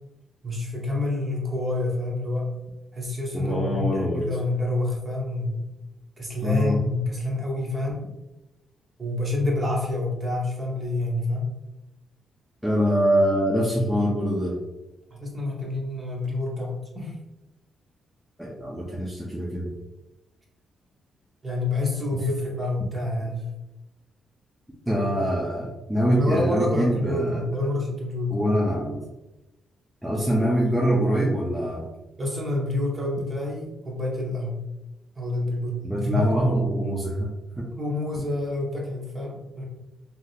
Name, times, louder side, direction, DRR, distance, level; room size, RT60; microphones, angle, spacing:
voice 1, 0.4-2.5 2.9-5.7 6.2-8.1 9.0-11.5 15.1-17.2 21.4-23.5 26.1-28.6 30.6-30.7 32.2-34.6 35.2-36.6 37.7-39.6, left 2 dB, 25° right, -2 dB, 0.9 m, -28 dB
voice 2, 3.3-4.2 6.4-6.8 12.6-14.6 18.4-19.7 24.9-27.4 28.3-29.0 30.0-31.8 35.8-37.3 37.6-37.7, equal, 5° right, -5 dB, 0.5 m, -24 dB
3.3 x 2.7 x 2.3 m, 1.0 s
cardioid pair, 130°, 0 cm